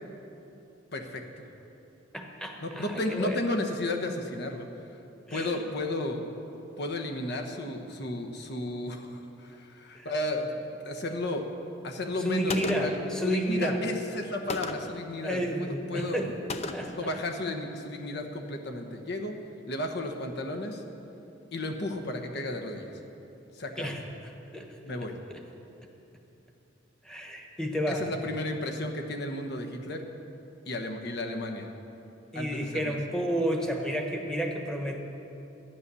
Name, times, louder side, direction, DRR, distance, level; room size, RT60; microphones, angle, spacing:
voice 1, 0.9-1.2 2.6-4.7 5.3-6.2 6.8-10.5 10.8-11.4 11.8-16.2 17.0-19.3 19.7-20.8 21.5-23.0 23.5-23.9 24.8-25.2 27.9-30.0 30.7-31.7 32.3-33.0, left 1 dB, 60° left, 3 dB, 1.2 m, -33 dB
voice 2, 2.1-3.4 5.3-5.6 9.9-10.1 12.2-13.8 15.2-16.3 16.7-17.2 23.8-24.0 24.5-25.0 25.3-25.4 27.0-28.1 32.3-35.0, equal, 5° left, 2 dB, 1.2 m, -31 dB
Gunshot gunfire, 12.5-13.1 14.5-15.0 16.5-17.1, left 3 dB, 35° left, 0.6 m, -35 dB
12.0 x 9.8 x 6.9 m, 2.9 s
head